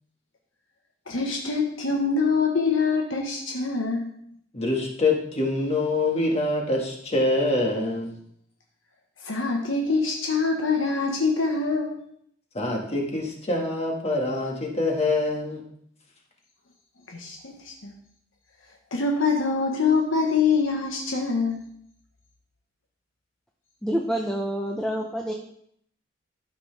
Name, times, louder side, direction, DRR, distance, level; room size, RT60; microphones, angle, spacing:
voice 1, 1.1-4.1 9.2-12.0 17.1-17.9 18.9-21.6, left 4 dB, 80° left, 0 dB, 1.3 m, -24 dB
voice 2, 4.5-8.1 12.5-15.6, left 2 dB, 35° left, -1 dB, 1.8 m, -25 dB
voice 3, 23.8-25.3, equal, 5° left, 0 dB, 0.7 m, -27 dB
12.5 x 6.0 x 3.4 m, 0.68 s
head